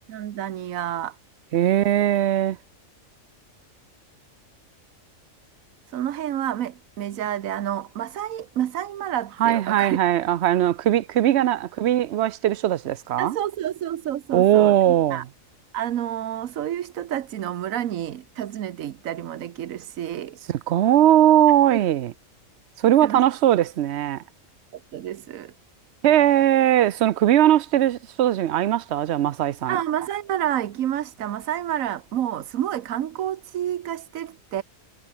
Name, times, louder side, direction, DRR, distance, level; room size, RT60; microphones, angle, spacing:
voice 1, 0.1-1.2 5.9-10.0 13.2-15.2 15.7-20.4 21.7-21.8 23.0-23.2 24.9-25.5 29.7-34.6, right 11 dB, 90° right, 1.2 m, -29 dB
voice 2, 1.5-2.6 9.4-13.4 14.3-15.2 20.5-22.1 22.8-24.2 26.0-29.8, right 12 dB, 65° right, 0.8 m, -19 dB
omnidirectional pair, 1.4 m